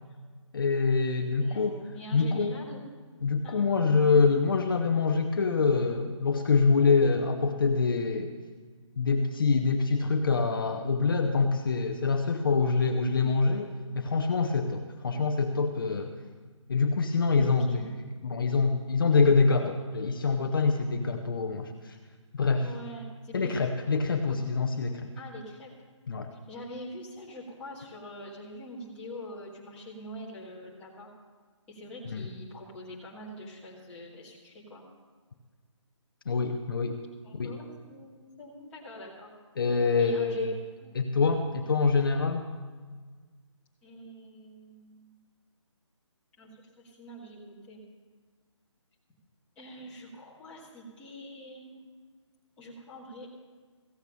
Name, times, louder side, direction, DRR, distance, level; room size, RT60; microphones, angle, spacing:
voice 1, 0.5-1.8 2.1-2.5 3.2-8.3 9.0-16.1 16.7-17.8 18.2-22.0 22.3-22.7 23.3-25.1 26.1-26.3 32.1-32.3 36.3-37.0 37.3-37.5 39.6-40.5 40.9-42.5, left 4 dB, 45° left, 5 dB, 0.8 m, -25 dB
voice 2, 1.4-2.8 3.4-3.7 12.5-13.2 17.4-17.9 22.6-23.5 24.3-24.4 25.2-25.7 26.3-31.1 31.7-34.8 37.2-39.3 40.0-41.0 43.8-45.1 46.4-47.8 49.6-51.8 52.6-53.3, equal, 5° left, -7 dB, 1.8 m, -44 dB
15.5 x 8.0 x 6.8 m, 1.5 s
hypercardioid pair, 170°, 16 cm